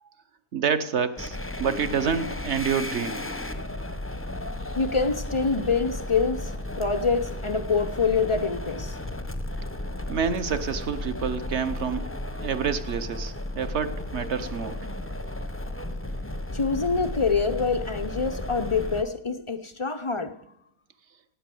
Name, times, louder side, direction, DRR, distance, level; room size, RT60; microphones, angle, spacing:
voice 1, 0.5-3.2 10.1-12.1 12.4-14.8, right 7 dB, 55° right, 11 dB, 1.0 m, -28 dB
sound 1, 1.2-19.0, left 1 dB, 10° left, 0.6 m, -34 dB
voice 2, 4.8-6.5 6.8-9.0 16.5-20.3, left 4 dB, 50° left, 9 dB, 0.3 m, -25 dB
17.0 x 9.3 x 7.7 m, 0.80 s
omnidirectional pair, 1.6 m